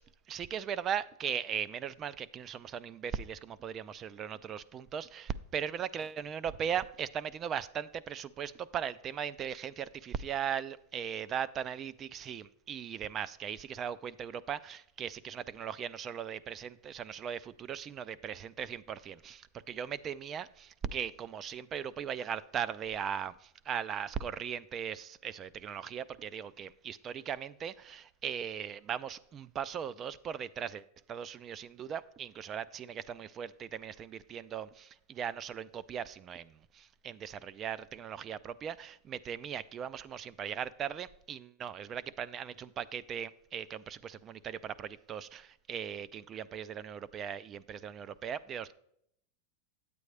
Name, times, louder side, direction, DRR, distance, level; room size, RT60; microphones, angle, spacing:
voice 1, 0.3-48.7, right 8 dB, 25° right, 18 dB, 0.3 m, -38 dB
9.1 x 8.3 x 3.3 m, 0.72 s
supercardioid pair, 145°, 0 cm